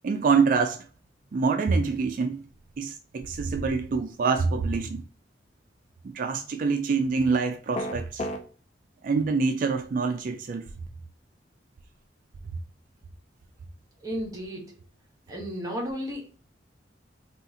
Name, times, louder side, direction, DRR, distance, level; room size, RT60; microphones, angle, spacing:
voice 1, 0.0-0.8 1.3-2.4 2.8-5.1 6.0-8.3 9.0-10.7, right 4 dB, 45° right, 0.3 m, -26 dB
sound 1, 7.7-8.4, left 1 dB, 35° left, 0.4 m, -30 dB
voice 2, 14.0-14.7 15.3-16.3, equal, 20° right, 0.9 m, -33 dB
2.8 x 2.4 x 3.6 m
head